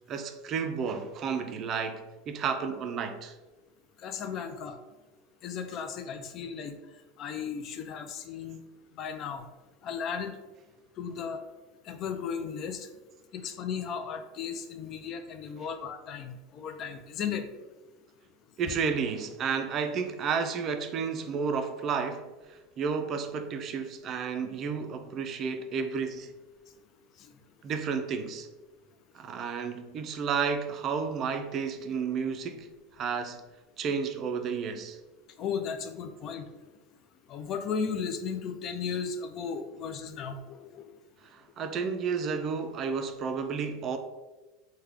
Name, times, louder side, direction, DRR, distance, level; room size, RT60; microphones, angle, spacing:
voice 1, 0.1-3.4 18.6-26.3 27.6-28.5 29.1-33.4 33.8-35.0 41.2-44.0, right 6 dB, 40° right, 0.3 m, -32 dB
voice 2, 4.0-4.8 5.4-6.8 7.2-8.6 9.0-9.5 9.8-10.4 11.0-11.4 11.9-12.9 13.3-17.5 35.4-36.5 37.3-40.9, left 6 dB, 45° left, 0.4 m, -35 dB
3.4 x 2.2 x 3.3 m
supercardioid pair, 115°, 0 cm